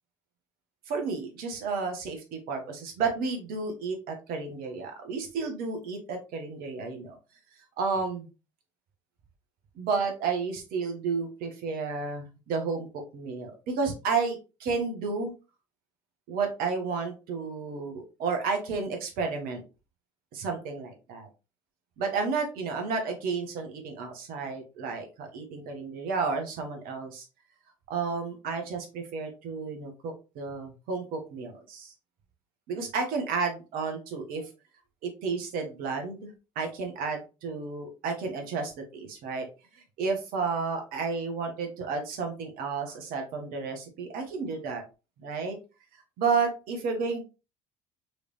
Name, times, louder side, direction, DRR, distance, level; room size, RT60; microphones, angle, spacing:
voice 1, 0.9-7.2 7.8-8.3 9.7-15.3 16.3-19.6 20.3-21.3 22.0-27.2 27.9-31.9 32.7-34.5 35.0-36.3 36.5-39.5 40.0-44.8 45.2-45.6 46.2-47.2, right 4 dB, 60° right, 4 dB, 1.5 m, -32 dB
4.7 x 3.4 x 3.2 m, 0.30 s
hypercardioid pair, 60°, 17 cm